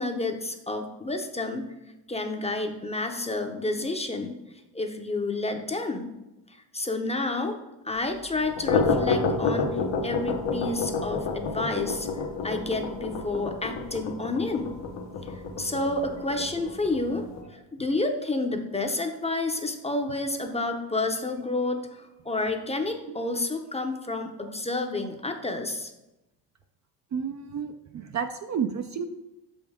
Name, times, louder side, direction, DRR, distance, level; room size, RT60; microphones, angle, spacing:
voice 1, 0.0-1.6 2.1-4.3 4.7-6.1 6.7-7.6 7.8-12.1 12.4-14.7 15.3-25.9, left 2 dB, 15° left, 5 dB, 0.7 m, -30 dB
sound 1, 8.4-17.4, left 4 dB, 70° left, 1.0 m, -29 dB
voice 2, 27.1-29.1, right 7 dB, 40° right, 7 dB, 0.4 m, -31 dB
6.1 x 5.3 x 3.6 m, 0.95 s
cardioid pair, 90°, 45 cm